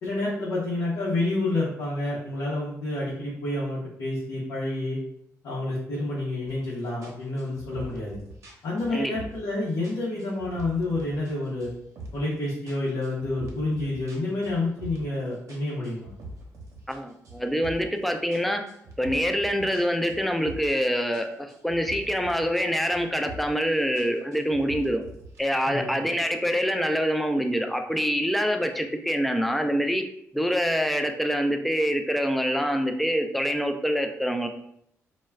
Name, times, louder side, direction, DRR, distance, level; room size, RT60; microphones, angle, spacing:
voice 1, 0.0-5.0 5.4-8.2 8.6-11.7 12.1-16.1 25.7-25.9, left 2 dB, 90° left, -6 dB, 0.7 m, -29 dB
sound 1, 6.5-6.7 7.0-9.5 9.8-11.3 11.6-12.3 12.7-15.2 15.5-18.0 18.3-20.9 21.1-22.6 22.9-23.6 24.0-25.4, right 1 dB, 60° right, 0.7 m, -43 dB
voice 2, 16.9-18.6 19.0-25.0 25.4-30.0 30.3-34.5, equal, ahead, 5 dB, 0.3 m, -25 dB
2.2 x 2.1 x 3.4 m, 0.72 s
cardioid pair, 95°, 6 cm